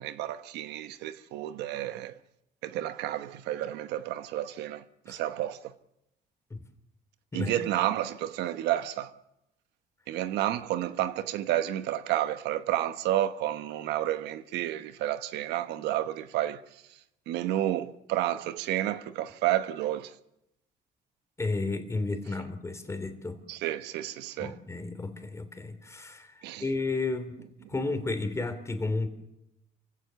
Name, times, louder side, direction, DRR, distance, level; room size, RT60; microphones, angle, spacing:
voice 1, 0.0-2.2 2.6-5.7 7.3-9.1 10.1-16.8 17.3-20.1 23.5-24.6 26.4-26.7, right 13 dB, 85° right, 1.1 m, -31 dB
voice 2, 21.4-23.4 24.4-27.3 27.7-29.1, left 3 dB, 15° left, 3.0 m, -32 dB
27.5 x 16.5 x 7.0 m
cardioid pair, 110°, 17 cm